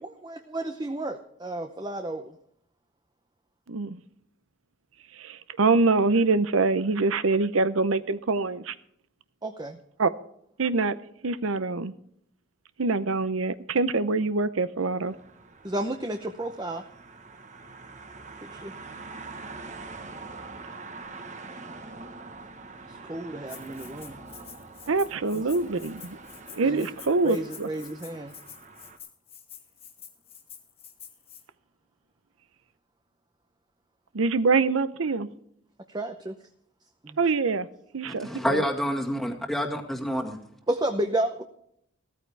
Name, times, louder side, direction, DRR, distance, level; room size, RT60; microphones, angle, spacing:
voice 1, 0.2-2.3 9.4-9.8 15.6-16.8 18.4-18.7 22.9-24.2 26.6-26.9 27.2-28.3 35.9-36.4 37.0-37.2 40.7-41.4, right 1 dB, 20° right, 6 dB, 0.7 m, -31 dB
voice 2, 3.7-4.0 5.1-8.8 10.0-10.1 10.6-11.0 11.2-11.9 12.8-15.1 24.9-26.2 26.5-27.7 34.1-35.3 37.2-37.7 37.9-38.6, right 3 dB, 85° right, 14 dB, 0.7 m, -25 dB
sound 1, 15.0-29.0, right 3 dB, 35° right, 1.3 m, -44 dB
Rattle (instrument), 23.5-31.4, left 8 dB, 30° left, 1.9 m, -48 dB
voice 3, 38.0-40.4, equal, ahead, 2 dB, 1.8 m, -28 dB
15.5 x 14.0 x 3.4 m, 0.71 s
head